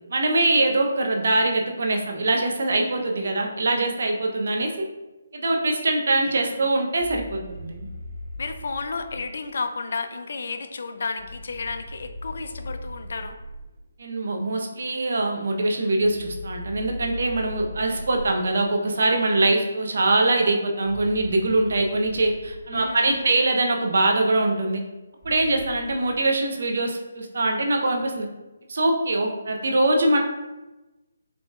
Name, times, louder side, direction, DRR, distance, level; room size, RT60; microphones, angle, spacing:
voice 1, 0.1-4.9 5.3-7.9 14.0-24.8 25.2-28.3 28.7-30.2, right 2 dB, 65° right, 2 dB, 0.8 m, -23 dB
voice 2, 6.2-6.8 8.4-13.4 22.7-23.3, left 4 dB, 60° left, 8 dB, 0.4 m, -32 dB
sound 1, 7.0-9.3 11.2-13.7 16.0-18.6 20.8-23.4 25.2-25.9, left 1 dB, 30° right, 1.1 m, -39 dB
4.8 x 3.8 x 2.4 m, 1.1 s
figure-of-eight pair, 150°, 0 cm